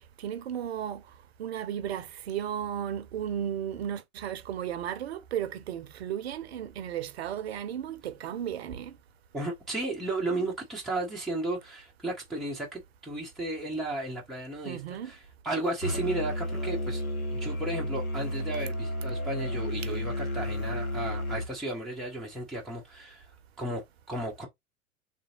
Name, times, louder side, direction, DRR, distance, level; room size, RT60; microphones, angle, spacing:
voice 1, 0.2-9.0 14.6-15.1, right 10 dB, 50° right, 0.5 m, -35 dB
voice 2, 9.3-15.2 15.4-17.0 17.3-23.3 23.6-24.5, right 2 dB, ahead, 0.4 m, -34 dB
Musical instrument, 15.8-21.5, left 1 dB, 85° left, 0.9 m, -32 dB
3.2 x 2.5 x 2.8 m
figure-of-eight pair, 95°, 42 cm